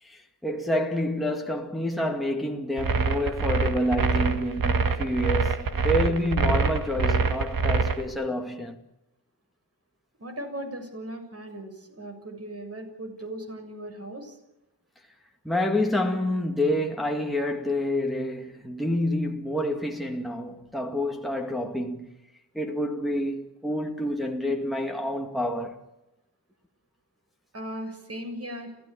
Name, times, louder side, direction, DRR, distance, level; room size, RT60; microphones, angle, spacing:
voice 1, 0.0-8.8 15.4-22.2 22.5-25.8, left 1 dB, ahead, 2.2 m, -28 dB
sound 1, 2.8-8.0, right 4 dB, 50° right, 2.1 m, -24 dB
voice 2, 10.2-14.4 27.5-28.7, right 1 dB, 35° right, 7.0 m, -38 dB
28.5 x 15.5 x 8.8 m
cardioid pair, 110°, 42 cm